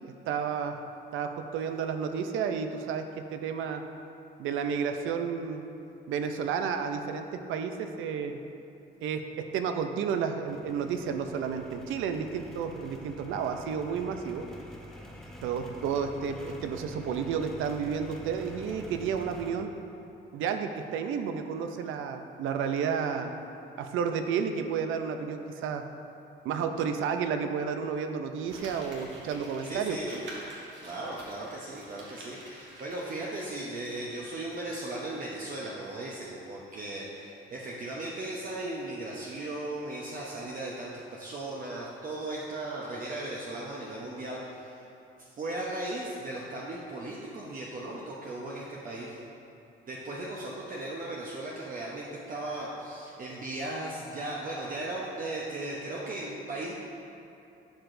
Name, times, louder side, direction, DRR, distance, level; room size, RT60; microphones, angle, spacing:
voice 1, 0.3-0.8 1.1-3.8 4.4-5.6 6.1-8.4 9.0-14.5 15.4-19.7 20.3-23.3 23.8-25.8 26.4-30.0, right 6 dB, 85° right, 7 dB, 0.5 m, -31 dB
sound 1, 10.5-19.5, equal, ahead, 0.8 m, -47 dB
Crumpling crinkling, 28.4-34.2 34.5-34.6, right 1 dB, 65° right, 1.5 m, -48 dB
voice 2, 29.7-30.2 30.8-44.9 45.2-49.2 49.9-56.7, right 2 dB, 45° right, -4 dB, 0.8 m, -37 dB
11.5 x 4.7 x 2.6 m, 2.8 s
cardioid pair, 90°, 20 cm